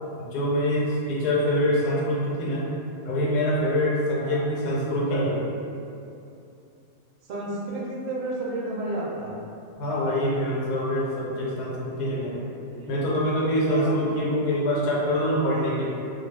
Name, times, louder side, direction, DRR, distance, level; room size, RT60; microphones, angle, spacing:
voice 1, 0.2-2.7 3.0-5.4 9.8-12.4 12.9-15.8, equal, 80° left, -4 dB, 1.2 m, -25 dB
voice 2, 7.3-9.3 11.7-12.2 12.7-14.0, right 1 dB, 60° right, -6 dB, 0.7 m, -32 dB
2.5 x 2.3 x 3.1 m, 2.6 s
omnidirectional pair, 1.7 m